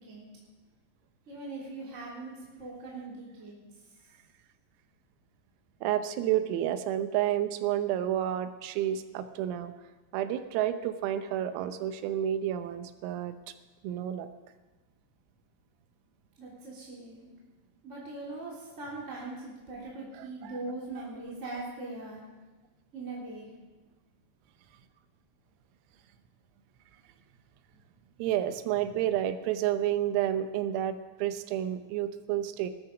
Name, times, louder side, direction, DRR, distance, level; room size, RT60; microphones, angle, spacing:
voice 1, 1.3-2.3 2.6-3.5 16.4-17.3 17.8-22.2 22.9-23.4, right 2 dB, 20° right, -5 dB, 2.3 m, -40 dB
voice 2, 5.8-9.7 10.1-13.4 13.8-14.3 20.1-20.6 28.2-32.7, right 11 dB, 85° right, 10 dB, 3.6 m, -30 dB
20.0 x 13.0 x 5.0 m, 1.2 s
omnidirectional pair, 5.9 m